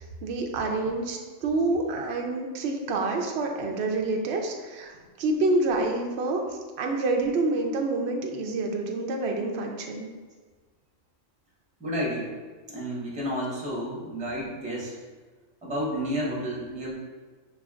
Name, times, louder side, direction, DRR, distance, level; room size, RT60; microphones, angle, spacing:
voice 1, 0.0-10.1, right 2 dB, 65° right, 1 dB, 0.7 m, -28 dB
voice 2, 11.8-12.3 12.7-15.0 15.6-16.9, equal, 5° right, -5 dB, 0.8 m, -31 dB
6.0 x 3.3 x 2.4 m, 1.4 s
omnidirectional pair, 1.4 m